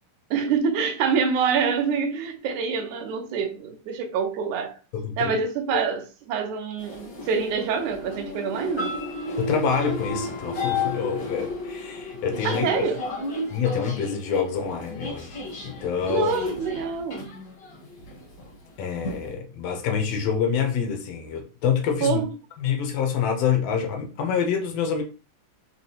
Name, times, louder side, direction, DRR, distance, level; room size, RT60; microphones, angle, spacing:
voice 1, 0.3-4.8 5.2-8.9 12.4-13.0 16.1-17.3 22.0-22.3, right 6 dB, 70° right, 2.0 m, -26 dB
voice 2, 4.9-5.3 5.7-5.8 9.4-12.7 13.5-16.3 18.8-22.2 22.6-25.0, left 7 dB, 80° left, 1.4 m, -26 dB
sound 1, 6.8-19.3, left 3 dB, 60° left, 1.1 m, -33 dB
5.9 x 3.0 x 2.9 m
omnidirectional pair, 4.0 m